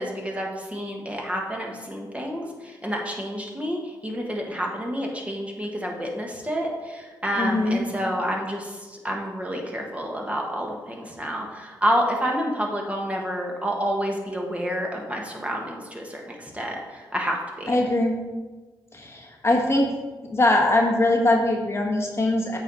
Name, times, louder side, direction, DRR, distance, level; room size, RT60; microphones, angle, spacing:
voice 1, 0.0-8.7 9.0-17.8, equal, 15° right, 0 dB, 1.7 m, -29 dB
voice 2, 7.4-7.8 17.7-18.2 18.9-19.9 20.3-22.6, left 1 dB, 30° left, 0 dB, 1.3 m, -21 dB
7.9 x 4.7 x 4.2 m, 1.3 s
supercardioid pair, 55°, 8 cm